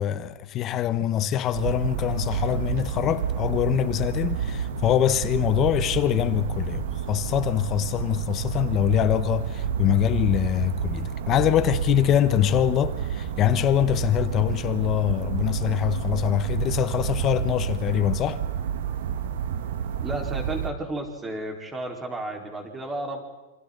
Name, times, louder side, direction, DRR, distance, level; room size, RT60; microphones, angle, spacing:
voice 1, 0.0-18.4, left 11 dB, 30° left, 1.2 m, -24 dB
sound 1, 1.5-20.7, right 8 dB, 75° right, 1.5 m, -30 dB
voice 2, 20.0-23.2, right 1 dB, 15° right, 4.3 m, -32 dB
28.5 x 26.0 x 4.0 m
supercardioid pair, 155°, 0 cm